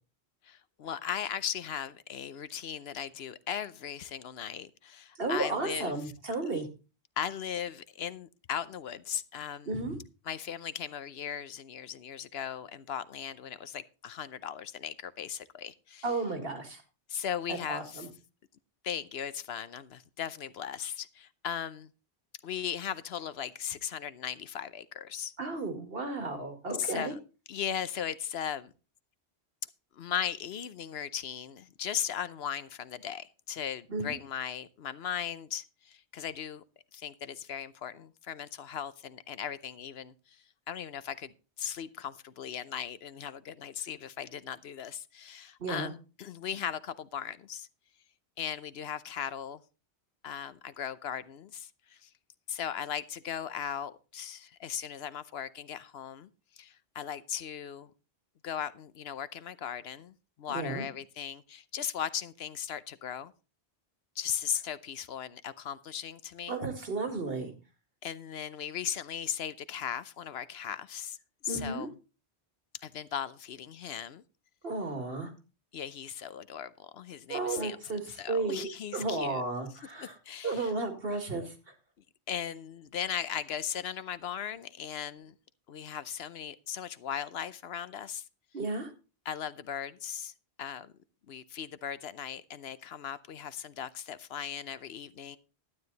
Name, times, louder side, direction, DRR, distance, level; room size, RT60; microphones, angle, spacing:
voice 1, 0.4-5.9 6.5-6.6 7.2-9.7 10.3-16.1 17.1-18.1 18.8-21.9 22.4-25.3 26.8-27.2 27.5-28.7 30.0-36.6 36.9-41.3 41.6-47.7 48.4-49.6 50.2-52.1 52.5-56.3 56.6-57.9 58.4-63.3 64.2-66.6 68.0-71.2 71.4-72.0 72.8-74.2 75.7-79.4 80.0-80.7 82.3-85.3 85.7-88.2 89.3-90.3 90.6-90.9 91.3-95.4, left 9 dB, 70° left, 0.9 m, -38 dB
voice 2, 5.2-6.7 9.7-10.0 16.0-16.8 17.5-18.1 25.4-27.1 33.9-34.2 45.6-45.9 60.5-60.8 66.5-67.5 71.5-71.9 74.6-75.3 77.3-78.0 78.3-78.7 78.9-80.2 80.4-81.5 88.5-88.9, right 3 dB, 60° right, 2.4 m, -33 dB
12.0 x 9.5 x 3.9 m
omnidirectional pair, 1.1 m